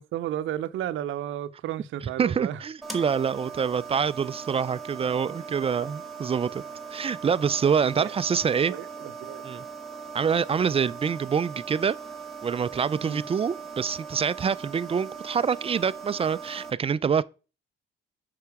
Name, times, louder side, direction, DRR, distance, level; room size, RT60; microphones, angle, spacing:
voice 1, 0.0-2.6 8.0-8.1 8.6-9.4 13.0-13.2, right 12 dB, 80° right, 0.7 m, -33 dB
voice 2, 2.2-6.6 6.9-8.7 9.4-9.6 10.1-12.0 12.4-17.2, right 6 dB, 30° right, 0.4 m, -26 dB
sound 1, 2.8-16.7, right 5 dB, ahead, 1.8 m, -40 dB
6.8 x 5.6 x 4.8 m
cardioid pair, 90°, 20 cm